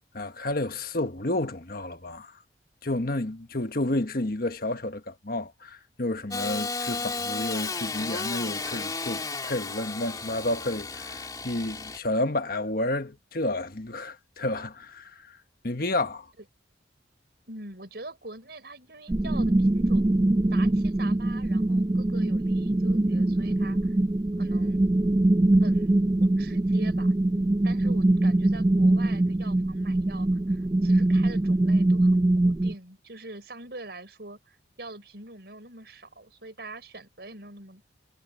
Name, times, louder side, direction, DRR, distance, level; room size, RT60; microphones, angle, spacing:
voice 1, 0.1-2.3 2.8-15.4 15.6-16.3, left 1 dB, 55° left, 1.4 m, -30 dB
Engine starting / Sawing, 6.3-12.0, left 4 dB, 20° left, 2.5 m, -33 dB
voice 2, 17.5-20.2 20.5-24.0 24.4-24.8 25.6-37.8, right 2 dB, 60° right, 6.4 m, -44 dB
sound 1, 19.1-32.7, right 1 dB, 20° right, 0.3 m, -23 dB
head